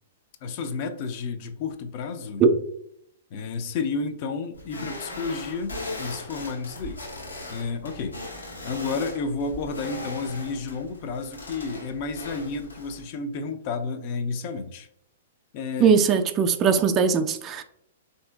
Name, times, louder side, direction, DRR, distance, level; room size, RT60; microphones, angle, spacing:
voice 1, 0.4-2.4 3.3-7.0 7.5-8.2 8.6-14.9 15.5-15.9, left 4 dB, 45° left, 7 dB, 0.4 m, -31 dB
sound 1, 4.5-13.0, left 2 dB, 90° left, 0.8 m, -39 dB
voice 2, 15.8-17.6, right 6 dB, 30° right, 7 dB, 0.3 m, -20 dB
3.5 x 2.6 x 2.3 m, 0.70 s
hypercardioid pair, 115°, 0 cm